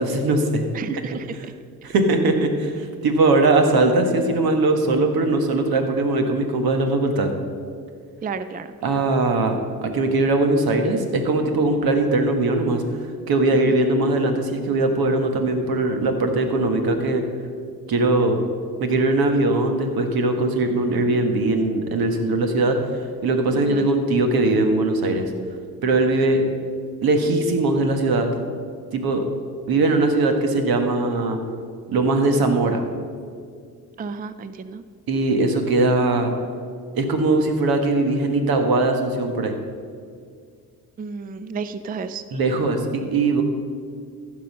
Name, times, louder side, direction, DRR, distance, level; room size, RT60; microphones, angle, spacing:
voice 1, 0.0-0.7 1.0-1.2 1.8-7.3 8.8-12.8 13.3-17.2 17.9-18.4 18.8-22.8 23.2-25.3 25.8-26.4 27.0-28.3 28.9-29.2 29.7-31.4 31.9-32.8 35.1-36.3 37.0-39.6 42.3-43.4, right 2 dB, 75° right, 5 dB, 1.4 m, -20 dB
voice 2, 0.7-1.5 8.2-8.7 13.6-13.8 23.5-23.9 34.0-34.8 41.0-42.2, right 5 dB, 25° right, 12 dB, 0.4 m, -32 dB
15.0 x 5.5 x 5.4 m, 2.1 s
cardioid pair, 80°, 37 cm